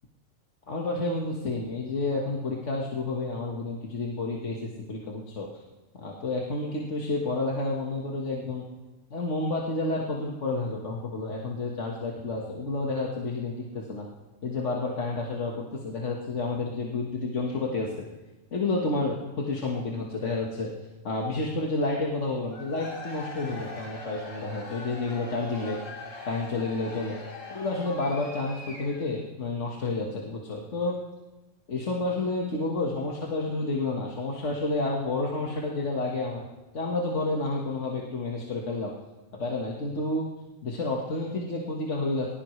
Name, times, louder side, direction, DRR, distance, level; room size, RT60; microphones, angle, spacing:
voice 1, 0.7-5.5 6.0-8.6 9.1-14.1 14.4-17.9 18.5-20.7 21.0-25.8 26.2-27.2 27.5-31.0 31.7-36.5 36.7-38.9 39.3-40.2 40.6-42.3, left 2 dB, 65° left, -2 dB, 1.9 m, -30 dB
Cheering / Crowd, 22.4-29.2, left 2 dB, 90° left, 2.9 m, -41 dB
20.0 x 19.5 x 3.3 m, 1.1 s
omnidirectional pair, 1.3 m